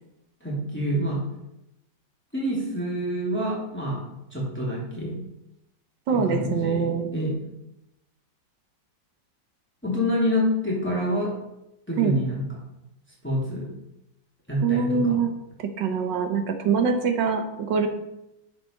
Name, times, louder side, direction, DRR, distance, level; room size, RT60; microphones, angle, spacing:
voice 1, 0.4-1.2 2.3-4.0 4.3-5.1 6.1-7.3 9.8-11.3 11.9-12.4 13.2-13.7 14.5-15.2, equal, 5° left, -5 dB, 2.8 m, -27 dB
voice 2, 6.1-7.1 12.0-12.2 14.6-15.3 15.6-17.9, right 6 dB, 70° right, 5 dB, 1.7 m, -24 dB
10.0 x 5.1 x 5.8 m, 0.88 s
omnidirectional pair, 2.1 m